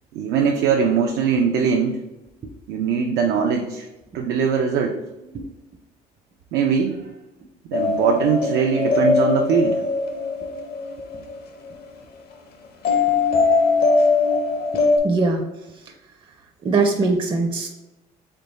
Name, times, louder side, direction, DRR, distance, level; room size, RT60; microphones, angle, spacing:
voice 1, 0.1-2.0 2.7-3.8 4.1-5.0 6.5-7.1 7.7-9.8, right 6 dB, 85° right, 2 dB, 0.5 m, -21 dB
sound 1, 7.7-11.7 12.8-15.0, left 4 dB, 65° left, 0.8 m, -21 dB
voice 2, 15.0-15.4 16.6-17.7, right 3 dB, 30° right, 3 dB, 0.5 m, -20 dB
3.6 x 3.4 x 4.0 m, 0.97 s
cardioid pair, 110°, 17 cm